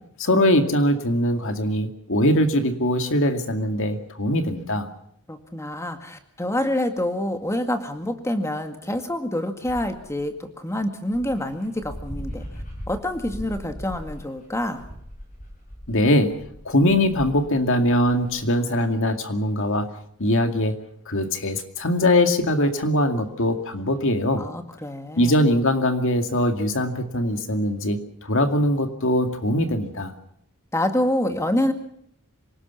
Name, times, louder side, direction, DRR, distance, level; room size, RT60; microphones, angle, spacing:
voice 1, 0.2-4.9 15.9-16.4 16.7-19.9 20.2-20.8 21.1-24.5 25.2-30.1, left 1 dB, 60° left, 6 dB, 2.3 m, -22 dB
voice 2, 5.3-12.4 12.9-14.8 24.4-25.4 30.7-31.7, left 1 dB, 15° left, 6 dB, 2.1 m, -27 dB
Dog, 9.6-10.2 10.8-10.9 11.1-18.4, equal, 40° left, 6.9 m, -39 dB
26.5 x 18.5 x 5.7 m, 0.70 s
head